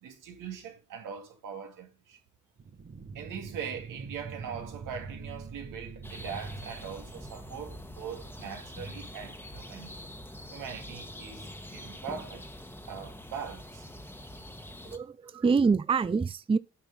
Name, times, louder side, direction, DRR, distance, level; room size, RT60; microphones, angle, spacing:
voice 1, 0.0-2.2 3.1-9.9 10.5-12.4 12.9-13.9 15.3-15.4, right 7 dB, 90° right, 2.2 m, -41 dB
sound 1, 2.6-9.0, right 5 dB, 35° right, 1.2 m, -45 dB
sound 2, 6.0-15.0, left 1 dB, 5° left, 1.2 m, -44 dB
voice 2, 14.8-16.6, right 5 dB, 20° right, 0.5 m, -26 dB
9.0 x 4.4 x 5.2 m
cardioid pair, 75°, 31 cm